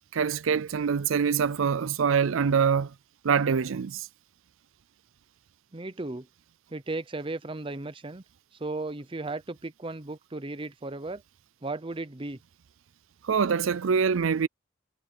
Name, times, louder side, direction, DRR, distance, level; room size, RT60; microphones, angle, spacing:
voice 1, 0.1-2.9 3.2-4.1 13.2-14.5, right 6 dB, 75° right, 0.5 m, -24 dB
voice 2, 5.7-6.3 6.7-8.2 8.6-11.2 11.6-12.4, right 2 dB, 25° right, 0.7 m, -35 dB
head